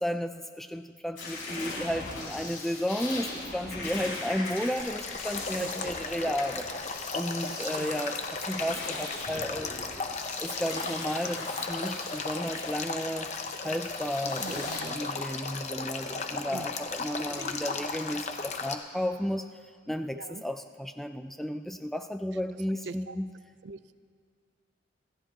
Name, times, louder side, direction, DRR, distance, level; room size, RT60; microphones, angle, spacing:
voice 1, 0.0-6.7 7.1-9.7 10.4-13.3 13.6-19.6 19.9-23.3, equal, ahead, 8 dB, 0.3 m, -33 dB
sound 1, 1.2-14.8, left 2 dB, 80° left, 5.0 m, -39 dB
Male speech man speaking / Stream / Trickle dribble, 4.8-18.7, left 4 dB, 35° left, 0.8 m, -36 dB
voice 2, 5.6-5.9 7.5-7.9 14.4-15.0 16.5-16.7 20.1-20.4 22.9-23.2 23.6-24.0, right 4 dB, 60° right, 12 dB, 0.5 m, -42 dB
sound 2, 14.2-14.9 17.2-18.0, equal, 25° right, 1.3 m, -44 dB
26.5 x 14.5 x 2.9 m, 2.1 s
head